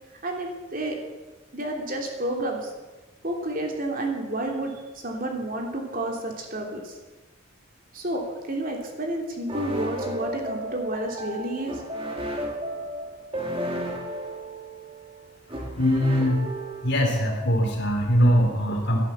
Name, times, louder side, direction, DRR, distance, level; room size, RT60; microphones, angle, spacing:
voice 1, 0.2-1.0 1.5-2.7 3.2-4.7 5.0-6.9 7.9-8.2 8.5-11.7, right 1 dB, 40° right, 1 dB, 3.0 m, -30 dB
sound 1, 9.5-17.2, right 1 dB, 25° right, 2.3 m, -33 dB
voice 2, 15.6-16.4 16.8-19.0, equal, 55° left, 1 dB, 3.4 m, -22 dB
17.5 x 11.0 x 7.3 m, 1.2 s
head